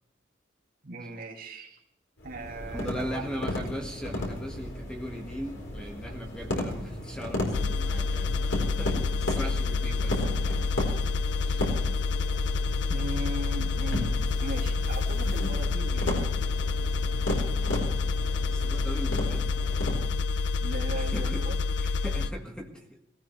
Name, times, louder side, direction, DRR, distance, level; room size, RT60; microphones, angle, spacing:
voice 1, 0.8-1.8 2.2-3.3 12.9-14.1 14.4-16.1 20.6-21.6, right 1 dB, 50° right, 1 dB, 2.5 m, -38 dB
sound 1, 2.2-20.1, left 1 dB, 90° left, 4.2 m, -35 dB
voice 2, 2.7-10.7 11.5-11.6 18.5-19.5 20.9-21.4 21.8-23.0, equal, 5° left, 1 dB, 1.7 m, -39 dB
sound 2, 7.5-22.3, left 4 dB, 65° left, 0.5 m, -28 dB
17.5 x 17.0 x 3.3 m, 0.83 s
head